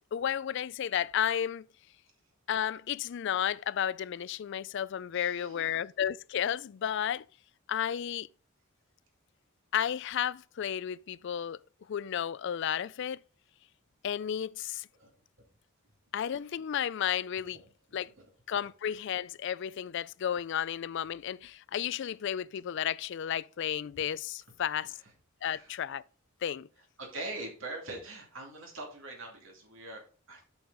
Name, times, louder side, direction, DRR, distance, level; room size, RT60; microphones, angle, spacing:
voice 1, 0.1-1.6 2.5-7.2 7.7-8.3 9.7-11.6 11.9-13.2 14.0-14.9 16.1-17.6 17.9-18.1 18.5-24.9 25.4-26.0 26.4-26.7, left 9 dB, 60° left, 0.3 m, -32 dB
voice 2, 5.1-5.8 14.9-15.1 17.5-17.7 18.2-18.3 24.7-25.1 25.4-25.8 27.0-30.4, right 2 dB, 70° right, 2.5 m, -43 dB
8.4 x 6.3 x 3.9 m
head